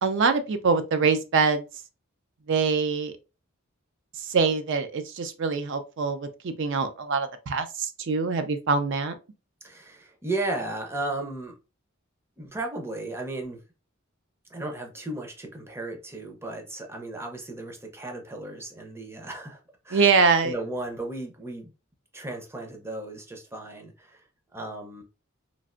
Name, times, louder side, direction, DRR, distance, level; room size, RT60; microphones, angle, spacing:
voice 1, 0.0-1.6 2.5-3.1 4.2-9.2 19.9-20.5, right 5 dB, 60° right, 0.4 m, -24 dB
voice 2, 9.6-11.5 12.4-13.6 14.5-20.1 20.4-21.7 22.1-24.2 24.5-25.0, right 2 dB, 10° right, 0.6 m, -35 dB
3.1 x 2.5 x 2.5 m
head